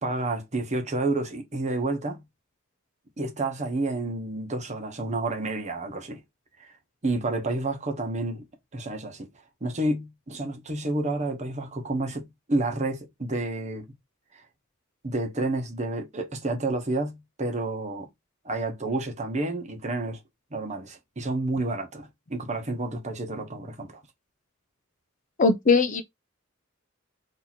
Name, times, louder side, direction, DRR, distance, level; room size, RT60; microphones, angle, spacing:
voice 1, 0.0-2.2 3.2-6.2 7.0-8.4 8.7-9.3 9.6-13.9 14.3-14.4 15.0-18.1 18.4-20.2 20.5-24.0, right 2 dB, 35° right, 1.0 m, -30 dB
voice 2, 25.4-26.0, left 4 dB, 40° left, 0.5 m, -20 dB
3.0 x 2.8 x 4.0 m
head